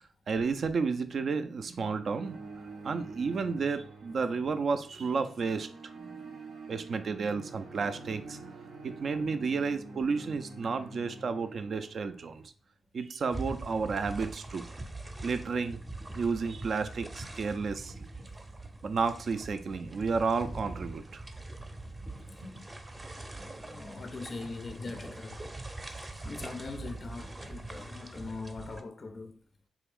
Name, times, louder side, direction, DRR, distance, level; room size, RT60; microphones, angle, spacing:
voice 1, 0.3-2.4 2.8-5.7 6.0-6.4 6.7-8.6 8.8-12.4 12.9-14.7 15.2-15.8 16.2-17.9 18.8-21.2, right 4 dB, 60° right, 0.3 m, -32 dB
sound 1, 2.0-12.5, right 3 dB, 85° right, 0.7 m, -47 dB
sound 2, 13.3-28.8, right 2 dB, 25° right, 0.6 m, -43 dB
voice 2, 23.4-25.6 26.2-29.4, left 3 dB, 45° left, 0.3 m, -41 dB
3.5 x 2.4 x 3.4 m
supercardioid pair, 50°, 0 cm